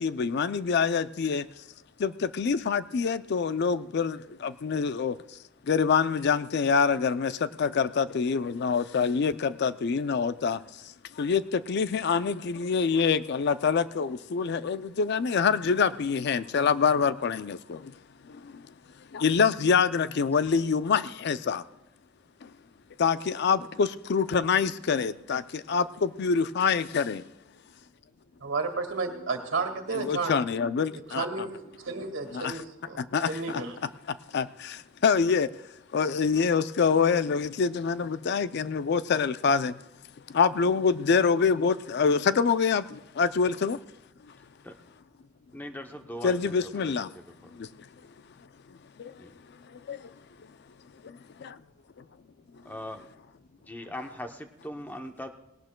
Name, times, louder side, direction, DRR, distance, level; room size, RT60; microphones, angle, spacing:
voice 1, 0.0-1.4 2.0-4.2 4.4-5.1 5.7-7.3 7.6-10.6 11.2-17.8 19.1-21.6 23.0-25.4 25.7-27.2 29.9-31.3 32.3-32.5 33.1-33.6 34.3-34.8 35.0-35.5 35.9-39.7 40.3-43.8 46.2-47.1 49.0-49.1 49.9-50.0, left 5 dB, 55° left, 0.4 m, -25 dB
voice 2, 28.4-30.4 31.1-33.8, right 4 dB, 75° right, 1.9 m, -32 dB
voice 3, 45.5-46.9 47.4-47.5 49.2-49.3 52.7-53.1 53.7-55.3, left 1 dB, 10° left, 0.7 m, -40 dB
19.0 x 18.0 x 2.2 m
head